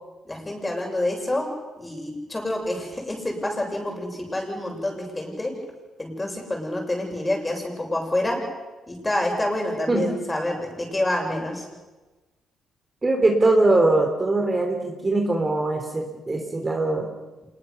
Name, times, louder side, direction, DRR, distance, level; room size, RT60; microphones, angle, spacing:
voice 1, 0.3-1.5 1.8-5.5 6.0-8.4 8.9-11.7, left 1 dB, 15° left, 2 dB, 6.9 m, -27 dB
voice 2, 13.0-17.1, right 2 dB, 25° right, 2 dB, 3.3 m, -21 dB
26.5 x 21.0 x 6.9 m, 1.2 s
cardioid pair, 90°, 0 cm